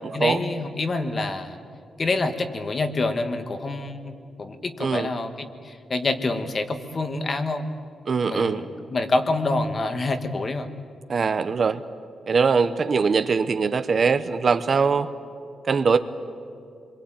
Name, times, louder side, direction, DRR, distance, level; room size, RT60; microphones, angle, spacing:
voice 1, 0.1-1.6 2.0-7.7 8.3-8.6 8.9-10.7, left 2 dB, 30° left, 8 dB, 1.4 m, -27 dB
voice 2, 4.8-5.2 8.1-8.7 11.1-11.8 12.3-15.1 15.6-16.0, right 5 dB, 40° right, 11 dB, 0.8 m, -22 dB
27.5 x 23.0 x 8.9 m, 2.5 s
wide cardioid pair, 175°, 0 cm